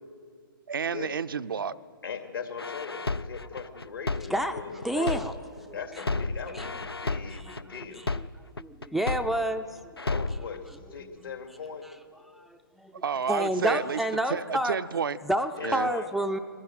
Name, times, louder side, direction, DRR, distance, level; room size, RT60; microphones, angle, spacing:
voice 1, 0.7-1.7 13.0-14.0 14.3-15.2 15.6-15.9, right 6 dB, 65° right, 12 dB, 0.6 m, -30 dB
voice 2, 2.0-5.2 5.7-7.4 7.7-8.0 10.0-10.6 10.9-11.9 15.6-16.1, left 6 dB, 70° left, 5 dB, 2.4 m, -39 dB
sound 1, 2.6-5.6 6.0-9.6 10.0-10.6, left 3 dB, 85° left, 0.5 m, -32 dB
voice 3, 4.3-4.6 4.8-5.3 5.6-5.8 6.5-6.7 7.3-8.3 8.6-10.0 12.3-12.9 13.3-14.8 15.2-16.4, right 1 dB, ahead, 8 dB, 0.4 m, -29 dB
21.5 x 15.0 x 9.2 m, 2.2 s
figure-of-eight pair, 120°, 12 cm